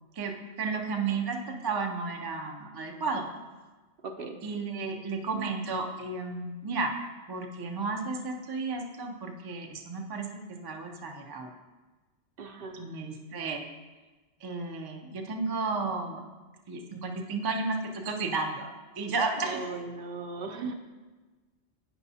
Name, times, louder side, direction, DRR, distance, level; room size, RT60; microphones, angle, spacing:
voice 1, 0.6-3.3 4.4-6.9 7.3-11.5 12.7-13.6 14.4-16.2 16.7-18.7 19.0-19.6, right 4 dB, 35° right, 3 dB, 0.4 m, -33 dB
voice 2, 4.0-4.4 12.4-12.9 19.4-20.7, right 4 dB, 65° right, 4 dB, 0.7 m, -37 dB
9.0 x 5.7 x 2.7 m, 1.3 s
omnidirectional pair, 1.1 m